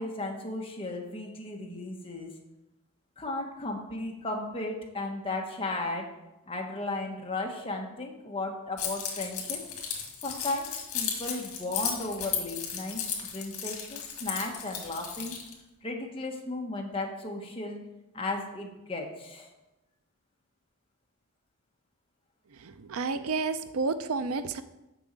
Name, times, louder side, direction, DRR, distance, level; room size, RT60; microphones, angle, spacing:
voice 1, 0.0-2.3 3.2-6.1 6.5-9.6 10.2-13.0 13.3-15.4 15.8-17.8 18.1-19.5, left 2 dB, 25° left, 0 dB, 1.3 m, -35 dB
Keys jangling, 8.8-15.5, left 7 dB, 75° left, 1.9 m, -35 dB
voice 2, 22.6-24.6, right 4 dB, 70° right, 11 dB, 0.5 m, -31 dB
6.9 x 5.5 x 7.4 m, 0.98 s
head